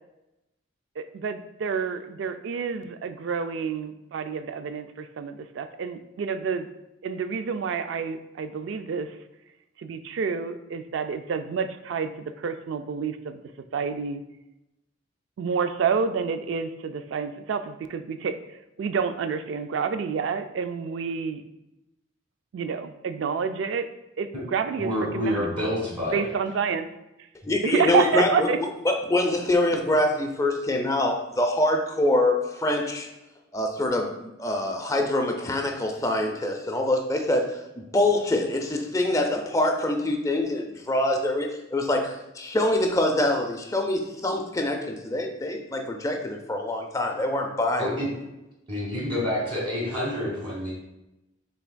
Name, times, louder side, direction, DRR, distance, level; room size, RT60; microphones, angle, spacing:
voice 1, 1.0-6.7 7.0-9.1 9.8-12.1 12.4-13.4 13.7-14.2 15.4-21.4 22.5-23.9 24.2-25.8 26.1-26.9 27.6-28.6, right 6 dB, 65° right, 9 dB, 0.3 m, -29 dB
voice 2, 24.8-26.3 27.4-27.5 47.8-48.1 48.7-50.7, left 1 dB, 25° right, -5 dB, 1.3 m, -28 dB
voice 3, 27.5-33.1 33.5-48.0, left 1 dB, 15° left, 3 dB, 0.4 m, -25 dB
5.7 x 3.4 x 2.2 m, 0.94 s
head